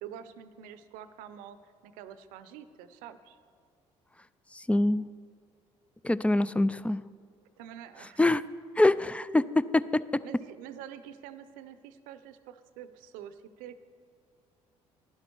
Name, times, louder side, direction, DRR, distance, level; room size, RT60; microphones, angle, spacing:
voice 1, 0.0-3.4 6.7-6.8 7.6-8.2 10.2-13.8, right 10 dB, 80° right, 12 dB, 0.6 m, -46 dB
voice 2, 4.5-5.0 6.0-7.0 8.2-8.4 8.8-10.2, left 2 dB, 10° left, 17 dB, 0.3 m, -25 dB
11.0 x 11.0 x 4.6 m, 2.1 s
hypercardioid pair, 60°, 14 cm